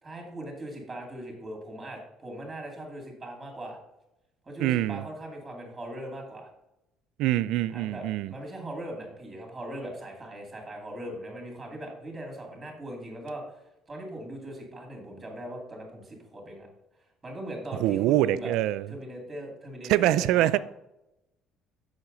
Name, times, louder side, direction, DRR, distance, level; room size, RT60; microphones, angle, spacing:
voice 1, 0.0-3.8 4.5-6.5 7.7-13.6 13.9-16.7 17.2-18.5 18.9-20.6, right 1 dB, 15° right, 2.4 m, -40 dB
voice 2, 4.6-5.0 7.2-8.3 17.8-18.9 19.9-20.6, right 14 dB, 75° right, 0.3 m, -24 dB
7.3 x 6.4 x 3.9 m
cardioid pair, 155°, 0 cm